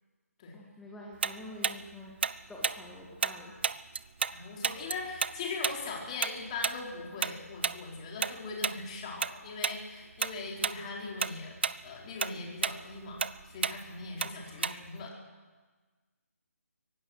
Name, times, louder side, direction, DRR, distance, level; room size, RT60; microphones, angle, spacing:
voice 1, 0.5-2.2 2.5-3.6, left 1 dB, 5° left, -3 dB, 1.9 m, -47 dB
Tick-tock, 1.2-4.4 4.6-9.3 9.6-9.8 10.2-10.8 11.1-15.0, right 6 dB, 45° right, 0.6 m, -32 dB
voice 2, 4.3-11.5 11.8-13.2 13.4-15.2, left 3 dB, 25° left, -1 dB, 4.3 m, -40 dB
24.5 x 17.5 x 6.5 m, 1.4 s
figure-of-eight pair, 145°, 8 cm